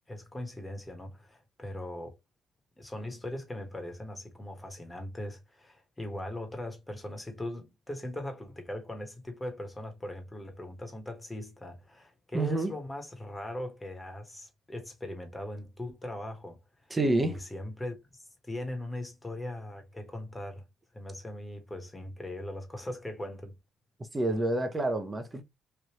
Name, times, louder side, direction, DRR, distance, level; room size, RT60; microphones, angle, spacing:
voice 1, 0.1-2.2 2.8-16.6 17.2-20.6 20.9-23.5, left 1 dB, 15° left, 1.3 m, -40 dB
voice 2, 12.3-12.7 16.9-17.4 24.1-25.4, right 2 dB, 20° right, 0.9 m, -28 dB
3.3 x 2.6 x 2.9 m
cardioid pair, 85°, 0 cm